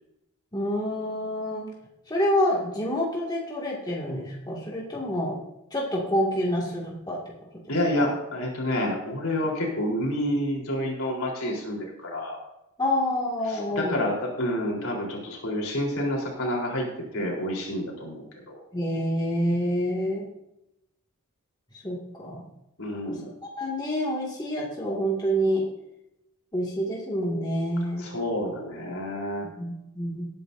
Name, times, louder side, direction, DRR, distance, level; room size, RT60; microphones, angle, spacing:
voice 1, 0.5-1.6 2.1-5.4 5.7-7.2 12.8-14.0 18.7-20.3 21.8-22.4 23.1-23.2 23.6-25.6 26.5-28.1 29.6-30.3, equal, 20° left, -4 dB, 2.2 m, -27 dB
voice 2, 7.7-12.4 13.5-16.9 17.1-18.6 22.8-23.3 28.0-29.5, left 1 dB, 70° left, -1 dB, 3.9 m, -29 dB
18.5 x 9.9 x 2.7 m, 0.86 s
head